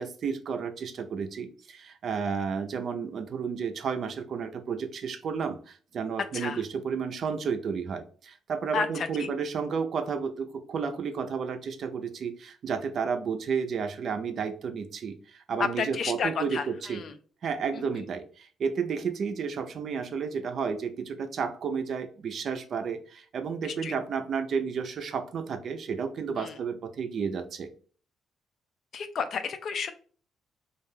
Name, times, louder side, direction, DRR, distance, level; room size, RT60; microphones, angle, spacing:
voice 1, 0.0-17.0 17.4-27.7, right 6 dB, 60° right, 7 dB, 0.4 m, -32 dB
voice 2, 8.7-9.3 15.8-17.1 17.7-17.8 23.6-23.9 26.4-26.6 28.9-29.9, left 6 dB, 60° left, 9 dB, 0.4 m, -32 dB
2.3 x 2.2 x 3.2 m, 0.43 s
cardioid pair, 90°, 0 cm